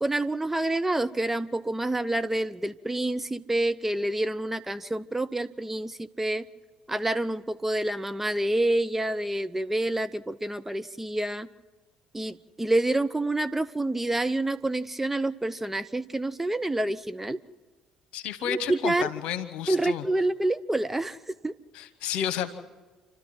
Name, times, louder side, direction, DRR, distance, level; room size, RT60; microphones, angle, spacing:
voice 1, 0.0-6.5 6.9-11.5 12.1-17.4 18.5-19.1 19.7-21.2 21.4-21.5, right 1 dB, 10° right, 11 dB, 0.6 m, -28 dB
voice 2, 18.1-20.0 21.7-22.5, left 9 dB, 60° left, 11 dB, 1.3 m, -31 dB
28.5 x 13.0 x 7.6 m, 1.2 s
figure-of-eight pair, 50°, 2 cm